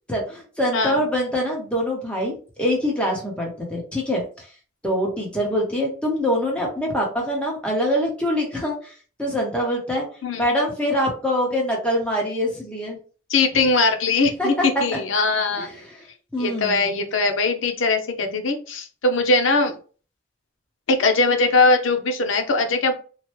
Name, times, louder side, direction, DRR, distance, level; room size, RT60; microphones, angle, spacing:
voice 1, 0.1-4.5 4.8-10.1 10.4-13.0 14.4-14.7 15.6-16.1 16.3-16.8, equal, 5° left, -2 dB, 0.8 m, -24 dB
voice 2, 13.3-14.5 14.8-15.7 16.4-19.7 20.9-22.9, left 3 dB, 85° left, 6 dB, 0.6 m, -20 dB
3.1 x 2.1 x 3.1 m, 0.39 s
head